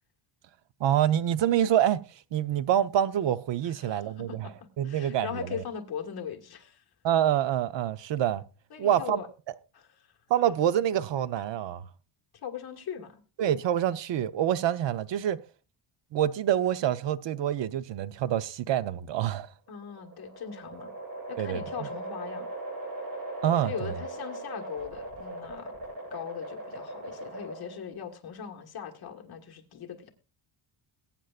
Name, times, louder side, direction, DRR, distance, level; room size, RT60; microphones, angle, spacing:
voice 1, 0.8-2.0 2.3-4.5 4.8-5.6 7.0-8.4 8.8-9.2 10.3-11.8 13.4-15.4 16.1-19.5 21.4-21.6 23.4-23.9, right 11 dB, 60° right, 0.8 m, -26 dB
voice 2, 3.6-6.8 8.7-9.3 9.7-10.1 12.3-13.2 19.7-20.9 21.3-22.5 23.6-25.7 26.1-30.1, left 8 dB, 50° left, 1.7 m, -40 dB
sound 1, 19.7-27.9, right 2 dB, 45° right, 7.9 m, -39 dB
21.0 x 9.2 x 2.4 m
cardioid pair, 170°, 48 cm